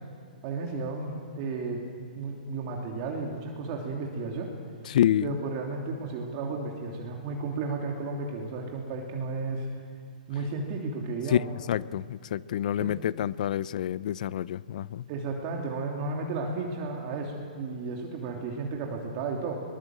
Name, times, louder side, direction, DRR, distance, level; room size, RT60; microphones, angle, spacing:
voice 1, 0.4-1.9 2.2-4.5 5.2-9.7 10.3-11.5 12.8-13.0 15.1-19.6, right 3 dB, 40° right, 0 dB, 2.9 m, -33 dB
voice 2, 4.9-5.4 11.3-11.4 11.7-15.0, left 11 dB, 60° left, 21 dB, 0.5 m, -27 dB
22.5 x 21.0 x 7.7 m, 2.1 s
hypercardioid pair, 125°, 5 cm